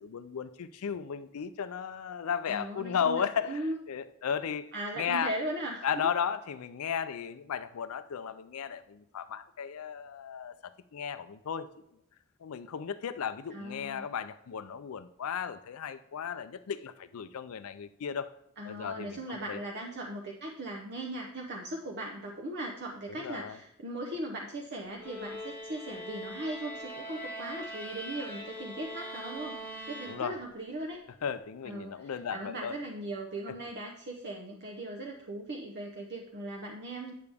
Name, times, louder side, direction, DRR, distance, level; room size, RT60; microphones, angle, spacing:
voice 1, 0.0-5.3 5.8-11.7 12.4-18.3 18.6-19.6 23.1-23.6 30.1-30.4 31.2-32.8 33.5-33.6, left 7 dB, 70° left, 12 dB, 0.4 m, -35 dB
voice 2, 2.5-3.8 4.7-6.1 13.5-14.1 18.6-29.6 29.9-31.0 31.6-37.1, right 1 dB, 50° right, 0 dB, 0.8 m, -38 dB
sound 1, 25.0-30.7, equal, 10° left, 1.1 m, -42 dB
9.3 x 6.8 x 3.5 m, 0.78 s
head